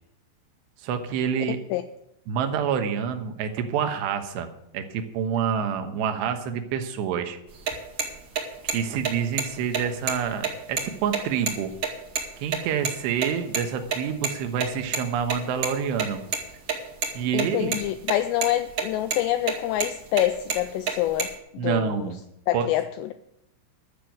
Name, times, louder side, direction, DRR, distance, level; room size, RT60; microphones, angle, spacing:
voice 1, 0.8-1.6 2.3-4.5 4.7-7.4 8.6-11.7 12.4-16.2 17.1-17.8 21.6-22.2 22.5-22.7, right 7 dB, 70° right, 6 dB, 3.1 m, -27 dB
sound 1, 7.5-12.6 12.8-12.9 13.2-13.3 13.5-13.6 13.9-14.0 14.2-14.3 14.6-15.7 16.0-16.4 16.7-17.4 17.7-18.1 18.4-18.8 19.1-19.2 19.5-19.9 20.2-21.3, right 6 dB, 50° right, 2.0 m, -27 dB
voice 2, 17.3-22.1 22.5-23.1, left 13 dB, 90° left, 10 dB, 2.4 m, -26 dB
12.0 x 6.8 x 9.2 m, 0.81 s
omnidirectional pair, 5.5 m